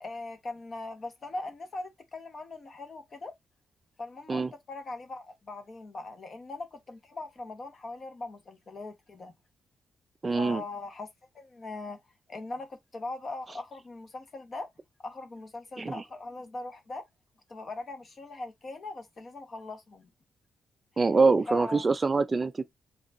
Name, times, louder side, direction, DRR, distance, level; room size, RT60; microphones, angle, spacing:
voice 1, 0.0-3.3 4.0-9.3 10.3-11.1 11.3-12.0 12.3-14.7 15.0-17.0 17.5-20.1 21.5-21.9, left 2 dB, 35° left, 1.0 m, -40 dB
voice 2, 10.2-10.6 15.8-16.0 21.0-22.6, right 4 dB, 25° right, 0.4 m, -24 dB
4.3 x 3.8 x 2.5 m
wide cardioid pair, 150°, 0 cm